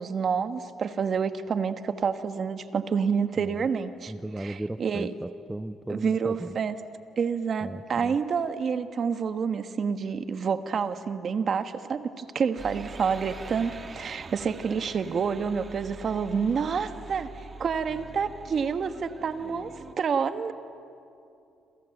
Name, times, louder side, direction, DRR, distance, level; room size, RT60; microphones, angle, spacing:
voice 1, 0.0-5.1 5.9-6.7 7.2-17.3 17.6-20.5, right 6 dB, 50° right, 10 dB, 1.4 m, -28 dB
voice 2, 4.1-6.5 7.6-8.2, right 1 dB, 10° right, 12 dB, 0.6 m, -36 dB
sound 1, 12.6-19.9, right 4 dB, 35° right, 1.2 m, -44 dB
28.0 x 27.5 x 7.9 m, 2.6 s
cardioid pair, 90°, 0 cm